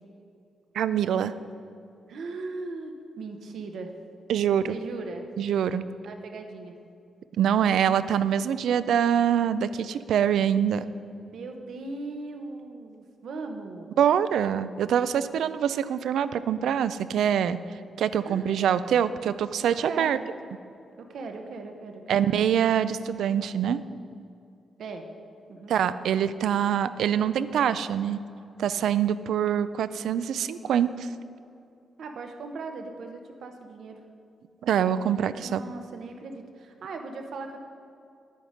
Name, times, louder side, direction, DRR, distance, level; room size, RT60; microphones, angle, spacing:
voice 1, 0.7-1.3 4.3-4.8 5.4-5.9 7.4-10.9 14.0-17.6 18.0-20.2 22.1-23.8 25.7-28.2 28.6-31.1 34.6-35.6, right 9 dB, 90° right, 14 dB, 0.4 m, -24 dB
voice 2, 2.1-3.9 4.7-5.3 6.0-6.7 11.2-13.9 18.2-18.6 19.7-20.3 21.0-22.2 24.8-25.1 25.5-25.7 32.0-34.0 35.4-37.6, right 3 dB, 70° right, 5 dB, 0.9 m, -38 dB
11.0 x 9.3 x 5.1 m, 2.6 s
wide cardioid pair, 160°, 0 cm